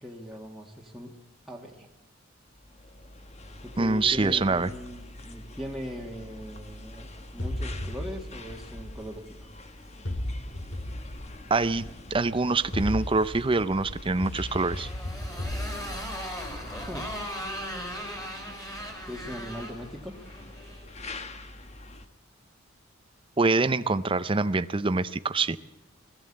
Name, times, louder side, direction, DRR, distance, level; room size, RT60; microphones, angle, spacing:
voice 1, 0.0-1.2 1.5-1.9 3.6-9.5 16.9-17.2 19.1-20.2, equal, ahead, -3 dB, 1.7 m, -40 dB
sound 1, 2.4-22.1, left 2 dB, 35° left, 1.2 m, -45 dB
voice 2, 3.8-4.7 11.5-14.9 23.4-25.6, right 3 dB, 25° right, 13 dB, 0.6 m, -25 dB
sound 2, 7.4-9.5 10.0-11.9 12.5-17.6, left 1 dB, 70° left, 2.1 m, -36 dB
Motorcycle, 14.4-20.8, equal, 15° left, 4.0 m, -38 dB
20.0 x 15.0 x 8.7 m, 0.99 s
head